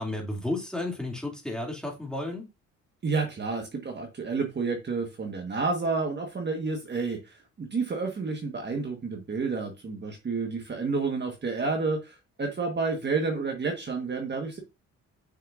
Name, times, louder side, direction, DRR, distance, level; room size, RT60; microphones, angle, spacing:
voice 1, 0.0-2.5, left 2 dB, ahead, 2.7 m, -32 dB
voice 2, 3.0-14.6, right 4 dB, 35° right, 1.5 m, -30 dB
6.4 x 6.3 x 2.6 m
cardioid pair, 90°, 30 cm